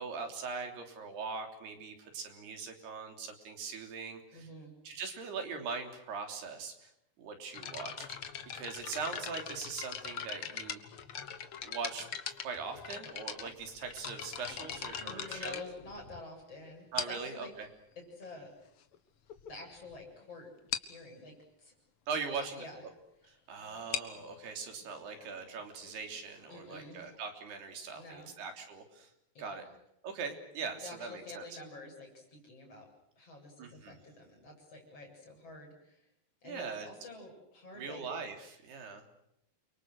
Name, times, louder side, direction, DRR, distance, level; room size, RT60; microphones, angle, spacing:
voice 1, 0.0-4.5 4.9-6.9 7.2-8.1 8.5-10.8 11.6-12.1 12.4-15.7 16.9-17.7 22.1-22.7 23.3-29.1 29.4-29.6 30.0-31.4 33.6-34.0 36.4-36.9 37.8-39.0, right 5 dB, 80° right, 5 dB, 5.3 m, -41 dB
voice 2, 4.3-4.7 15.0-17.5 18.0-18.5 19.5-20.5 20.8-21.7 22.4-22.8 26.5-27.0 27.9-28.3 29.4-29.7 30.8-32.9 33.2-36.1 36.4-38.0, left 2 dB, 35° left, 1 dB, 8.8 m, -48 dB
sound 1, 7.5-16.4 17.0-17.4 18.2-18.3 18.9-19.0 19.3-19.5 19.8-19.9 20.2-20.3 20.7-21.0 23.7-27.2, left 8 dB, 65° left, 1.4 m, -41 dB
29.5 x 24.0 x 6.6 m, 0.80 s
omnidirectional pair, 4.6 m